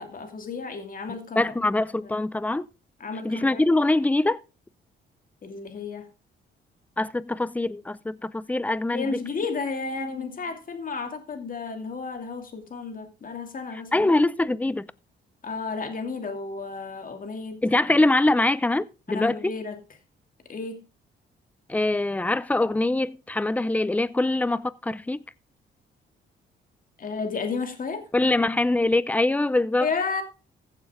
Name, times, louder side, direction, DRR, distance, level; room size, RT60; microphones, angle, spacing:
voice 1, 0.0-1.5 2.0-2.1 3.0-3.6 5.4-6.1 8.9-14.2 15.4-17.9 19.1-19.8 20.5-20.8 27.0-28.1 29.8-30.2, left 4 dB, 45° left, 2.7 m, -32 dB
voice 2, 1.4-2.7 3.2-4.4 7.0-9.2 13.9-14.9 17.6-19.5 21.7-25.2 28.1-29.9, left 2 dB, 5° left, 0.5 m, -23 dB
15.0 x 7.3 x 3.7 m
cardioid pair, 90°, 20 cm